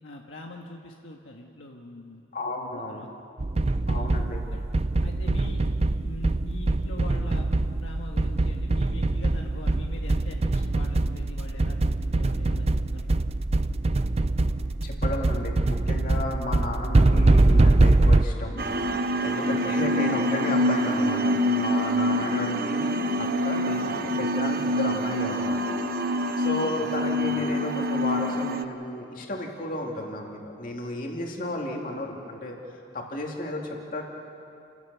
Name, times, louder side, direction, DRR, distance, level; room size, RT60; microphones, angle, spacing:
voice 1, 0.0-3.1 3.9-4.6 5.0-5.6 6.0-7.5 7.8-13.2 19.4-19.7 23.8-24.0 26.7-27.0, left 1 dB, 70° left, 0 dB, 1.6 m, -43 dB
voice 2, 2.3-3.1 3.9-4.4 14.8-18.6 19.2-25.6 26.4-32.6 32.9-34.0, left 1 dB, 45° left, 0 dB, 2.8 m, -33 dB
sound 1, 3.4-18.2, right 2 dB, 30° right, 0.5 m, -23 dB
sound 2, 18.6-28.6, equal, 45° right, 1.0 m, -26 dB
30.0 x 16.5 x 7.0 m, 2.6 s
head